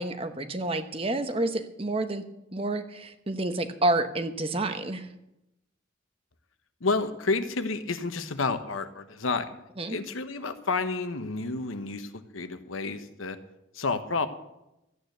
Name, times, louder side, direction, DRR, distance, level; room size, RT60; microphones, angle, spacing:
voice 1, 0.0-2.2 2.5-5.1 9.8-10.0, right 2 dB, 30° right, 8 dB, 1.0 m, -29 dB
voice 2, 6.8-9.5 9.9-13.4 13.7-14.3, left 3 dB, 85° left, 9 dB, 1.1 m, -30 dB
14.0 x 9.1 x 6.8 m, 0.88 s
head